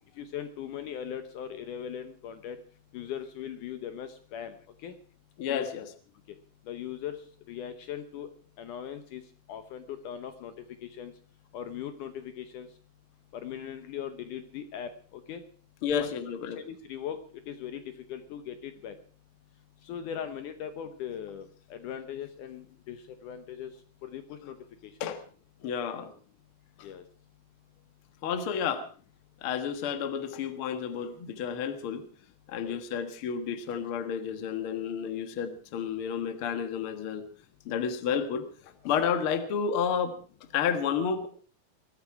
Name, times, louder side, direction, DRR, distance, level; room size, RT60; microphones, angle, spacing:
voice 1, 0.2-2.6 2.9-4.5 4.8-5.0 5.5-5.7 6.7-7.2 7.5-8.3 8.6-9.2 9.5-10.5 10.8-11.1 11.5-12.7 13.3-15.4 16.0-16.1 16.4-17.2 17.5-17.8 18.1-19.0 19.9-21.5 21.7-23.0 23.2-23.7 24.0-24.6 24.8-24.9 26.8-27.0 32.6-32.8, left 9 dB, 70° left, 9 dB, 2.3 m, -39 dB
voice 2, 5.4-5.9 15.8-16.6 25.0-25.2 25.6-26.1 26.8-26.9 28.2-28.9 29.4-32.1 32.5-37.2 37.7-40.1 40.5-41.3, left 7 dB, 50° left, 9 dB, 1.9 m, -31 dB
21.5 x 14.0 x 4.8 m, 0.43 s
omnidirectional pair, 4.2 m